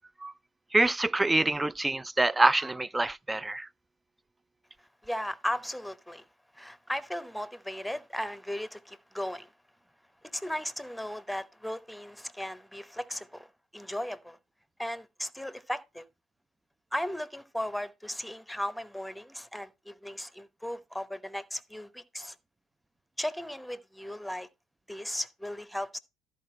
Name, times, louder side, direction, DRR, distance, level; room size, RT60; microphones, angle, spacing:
voice 1, 0.7-3.7, right 2 dB, 15° right, 0.4 m, -26 dB
voice 2, 5.0-6.2 6.5-9.5 10.3-13.5 13.7-14.4 14.8-16.0 16.9-22.3 23.2-24.5 24.9-26.0, equal, ahead, 1.0 m, -36 dB
13.0 x 4.6 x 4.3 m
hypercardioid pair, 55°, 0 cm